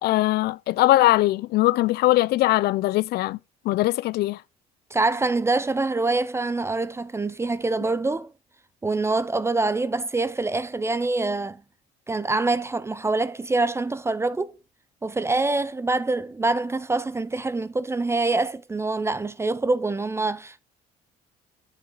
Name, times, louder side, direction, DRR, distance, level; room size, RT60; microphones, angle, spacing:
voice 1, 0.0-3.4 3.6-4.4, left 17 dB, 70° left, 0.4 m, -21 dB
voice 2, 4.9-8.3 8.8-11.6 12.1-14.5 15.0-20.6, right 3 dB, 15° right, 0.5 m, -25 dB
8.2 x 6.6 x 4.0 m
cardioid pair, 110°, 17 cm